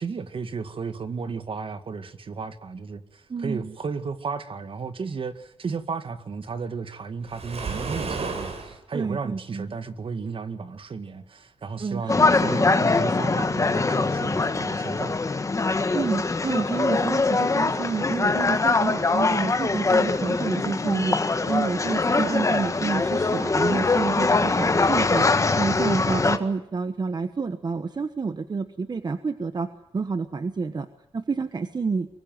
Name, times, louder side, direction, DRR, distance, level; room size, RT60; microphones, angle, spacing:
voice 1, 0.0-15.3, right 5 dB, 60° right, 2.0 m, -34 dB
voice 2, 3.3-3.7 8.9-9.8 11.8-12.5 15.9-30.9 31.1-32.1, right 4 dB, 40° right, 1.2 m, -29 dB
Waves surf, 7.3-8.8, right 4 dB, 80° right, 5.2 m, -32 dB
sound 1, 12.1-26.4, left 3 dB, 30° left, 1.6 m, -23 dB
24.0 x 23.5 x 9.4 m
wide cardioid pair, 155°, 10 cm